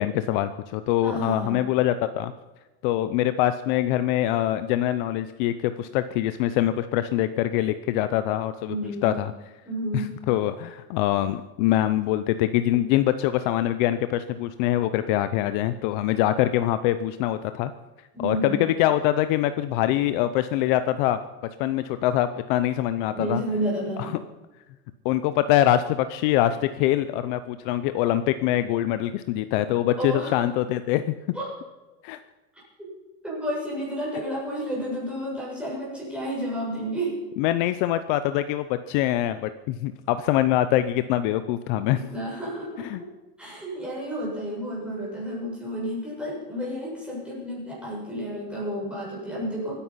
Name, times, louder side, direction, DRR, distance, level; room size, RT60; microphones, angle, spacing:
voice 1, 0.0-2.3 2.8-8.7 9.0-9.3 9.9-17.7 18.2-21.2 21.6-23.4 25.0-31.1 32.0-32.2 37.4-42.0 42.8-43.0, left 13 dB, 50° left, 12 dB, 0.7 m, -24 dB
voice 2, 1.0-1.6 8.7-9.2 9.6-10.2 18.1-18.6 23.1-24.2 30.0-30.4 31.3-31.5 32.8-32.9 33.2-37.2 41.9-42.9 43.4-49.8, right 1 dB, 5° right, -6 dB, 6.6 m, -31 dB
24.0 x 10.0 x 5.7 m, 1.2 s
supercardioid pair, 170°, 32 cm